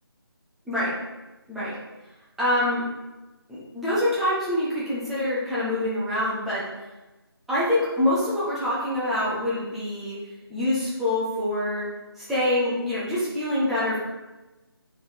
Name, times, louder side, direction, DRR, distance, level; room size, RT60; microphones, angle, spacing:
voice 1, 0.7-1.0 1.5-1.8 2.4-2.9 3.5-6.6 7.5-10.2 10.5-11.9 12.2-14.0, left 1 dB, ahead, -11 dB, 0.7 m, -25 dB
6.9 x 5.5 x 3.3 m, 1.1 s
figure-of-eight pair, 160°, 13 cm